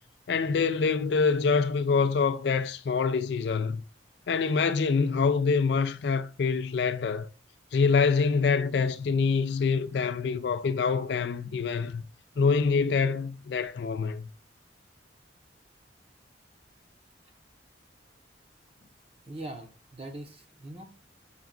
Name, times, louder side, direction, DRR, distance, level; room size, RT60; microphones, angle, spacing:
voice 1, 0.3-3.8 4.3-7.3 7.7-12.0 12.4-14.3, left 5 dB, 60° left, 0.4 m, -25 dB
voice 2, 19.3-21.0, right 1 dB, 30° right, 0.7 m, -42 dB
5.7 x 2.3 x 3.7 m
head